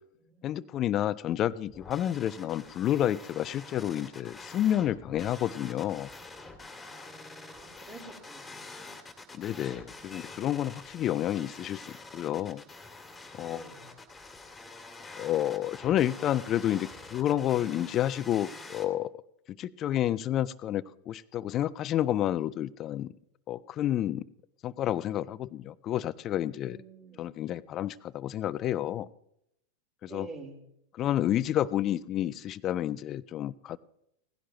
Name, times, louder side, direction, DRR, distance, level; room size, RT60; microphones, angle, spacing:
voice 1, 0.4-6.1 9.3-12.6 13.4-13.7 15.2-19.1 19.6-23.1 23.5-24.3 24.6-26.8 27.2-29.1 30.0-30.3 30.9-33.8, left 12 dB, 30° left, 20 dB, 0.5 m, -30 dB
sound 1, 1.7-18.9, left 3 dB, 10° left, 2.1 m, -46 dB
voice 2, 7.5-8.9 13.4-13.9 26.7-27.3 30.1-30.6, right 4 dB, 30° right, -4 dB, 4.1 m, -48 dB
18.5 x 15.5 x 3.0 m, 0.77 s
figure-of-eight pair, 90°, 0 cm